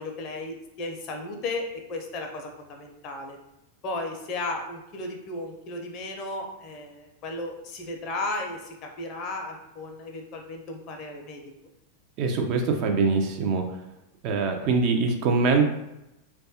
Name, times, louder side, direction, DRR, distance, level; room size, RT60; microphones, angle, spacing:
voice 1, 0.0-3.4 3.8-11.4, left 2 dB, 40° left, 3 dB, 0.5 m, -35 dB
voice 2, 12.2-13.6 14.2-15.7, right 4 dB, 40° right, 3 dB, 0.4 m, -23 dB
3.2 x 2.2 x 2.7 m, 0.89 s
figure-of-eight pair, 90°, 0 cm